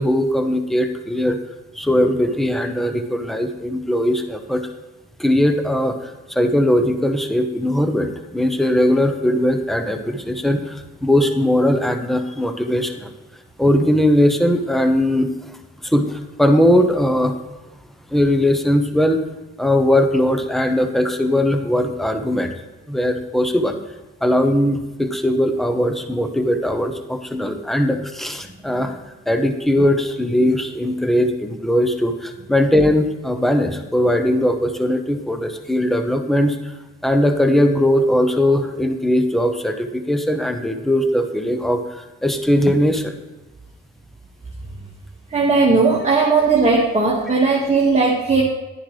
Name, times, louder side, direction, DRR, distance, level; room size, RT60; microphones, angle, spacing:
voice 1, 0.0-1.4 1.7-4.6 5.2-13.1 13.6-15.6 15.8-17.3 18.1-19.2 19.6-22.5 22.9-23.8 24.2-29.0 29.3-36.6 37.0-43.1, left 1 dB, ahead, 7 dB, 1.0 m, -19 dB
voice 2, 45.3-48.4, right 4 dB, 25° right, -5 dB, 2.0 m, -17 dB
11.5 x 10.0 x 3.4 m, 1.1 s
cardioid pair, 90°, 30 cm